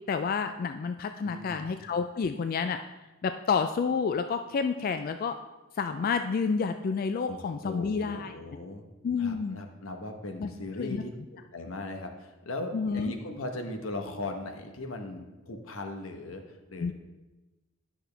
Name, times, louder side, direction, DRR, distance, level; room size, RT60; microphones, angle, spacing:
voice 1, 0.1-2.8 3.2-5.4 5.8-8.3 9.0-9.6 10.4-10.5 10.8-11.0 12.7-13.1 16.8-16.9, left 5 dB, 45° left, 8 dB, 0.3 m, -29 dB
voice 2, 1.2-1.7 7.2-8.8 9.2-16.9, left 2 dB, 85° left, 5 dB, 1.0 m, -38 dB
10.5 x 6.2 x 3.3 m, 1.1 s
head